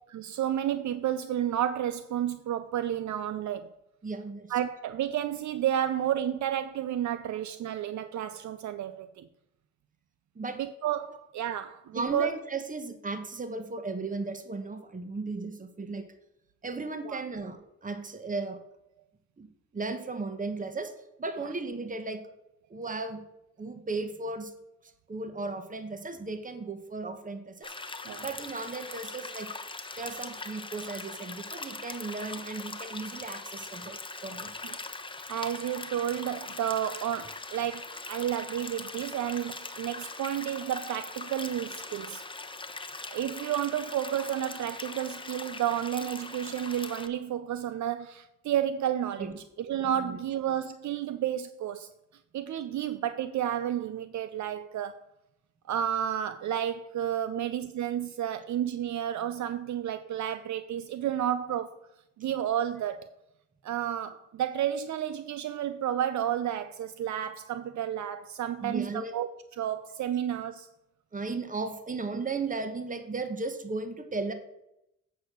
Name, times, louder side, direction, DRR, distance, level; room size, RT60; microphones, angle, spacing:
voice 1, 0.1-3.7 4.5-9.3 10.6-12.3 17.0-17.2 28.0-28.3 34.6-34.8 35.3-42.2 43.1-49.3 49.6-51.9 52.3-55.0 55.7-61.7 62.2-63.1 63.6-69.3 69.6-70.7, right 10 dB, 75° right, 0.5 m, -31 dB
voice 2, 4.0-4.5 10.3-10.6 11.9-16.1 16.6-18.6 19.4-19.5 19.7-22.2 22.7-23.2 23.6-24.5 24.8-27.7 28.2-29.6 30.0-34.5 49.2-49.3 49.8-50.2 57.3-57.4 68.6-69.1 71.1-74.3, right 3 dB, 25° right, 1.1 m, -36 dB
sound 1, 27.6-47.1, left 3 dB, 15° left, 0.9 m, -41 dB
8.1 x 4.7 x 6.6 m
cardioid pair, 65°, 29 cm